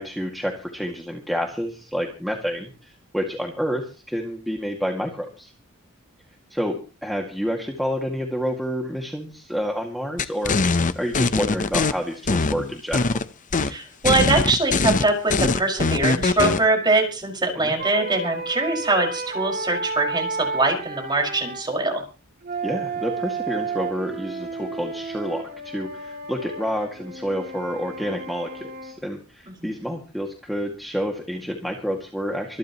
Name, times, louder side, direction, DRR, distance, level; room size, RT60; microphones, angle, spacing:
voice 1, 0.0-5.5 6.5-13.2 13.6-13.8 17.6-17.7 22.6-32.6, equal, ahead, 1 dB, 2.2 m, -29 dB
sound 1, 10.2-11.9 12.3-13.2 13.5-13.7 14.0-16.6, left 3 dB, 40° left, 0.8 m, -21 dB
voice 2, 13.7-22.0 29.6-29.7, right 2 dB, 20° right, 1 dB, 5.6 m, -22 dB
sound 2, 17.8-21.6 22.4-29.0, right 4 dB, 50° right, 4.0 m, -32 dB
25.5 x 12.0 x 3.1 m, 0.34 s
head